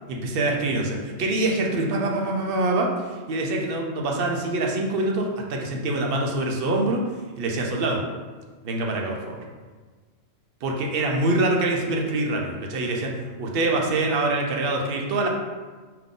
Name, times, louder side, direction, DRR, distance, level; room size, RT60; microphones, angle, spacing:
voice 1, 0.1-7.0 7.4-8.0 8.6-9.4 10.6-13.1 13.4-15.3, right 2 dB, 60° right, 0 dB, 0.7 m, -25 dB
3.6 x 2.8 x 3.6 m, 1.4 s
omnidirectional pair, 1.3 m